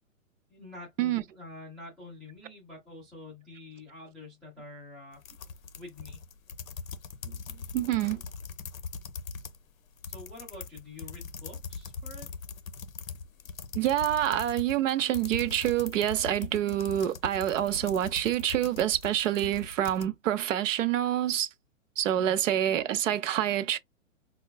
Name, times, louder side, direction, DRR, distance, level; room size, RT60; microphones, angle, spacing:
voice 1, 0.5-5.2 5.8-6.2 10.1-12.3 22.1-22.4, left 2 dB, ahead, 0.4 m, -47 dB
sound 1, 5.1-9.6 9.9-20.1, left 5 dB, 85° left, 0.6 m, -41 dB
voice 2, 7.7-8.2 13.7-21.5 22.0-23.8, right 12 dB, 70° right, 0.5 m, -27 dB
4.3 x 2.3 x 2.2 m
hypercardioid pair, 130°, 40 cm